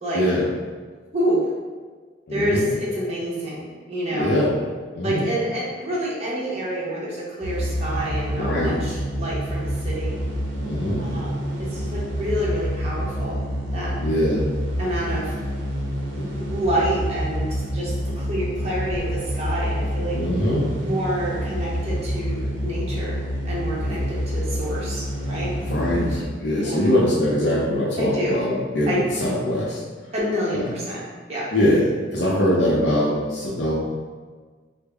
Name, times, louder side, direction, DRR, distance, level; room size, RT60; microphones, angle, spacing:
voice 1, 0.1-0.4 2.3-2.7 4.1-4.5 4.9-5.3 8.3-8.8 10.6-11.0 14.0-14.4 16.2-16.4 18.0-18.1 20.1-20.7 23.8-24.1 25.5-29.8 30.5-30.6 31.5-33.7, left 1 dB, 65° left, -6 dB, 0.5 m, -22 dB
voice 2, 2.3-4.3 5.0-10.2 11.0-13.4 13.7-13.9 14.8-15.3 16.2-20.2 20.8-23.2 23.4-25.5 26.6-26.9 28.0-28.4 28.9-29.0 30.1-31.0 31.3-31.5, equal, 35° right, -6 dB, 0.8 m, -28 dB
sound 1, 7.4-26.2, equal, 90° right, 0.6 m, -28 dB
3.4 x 2.1 x 3.3 m, 1.5 s
head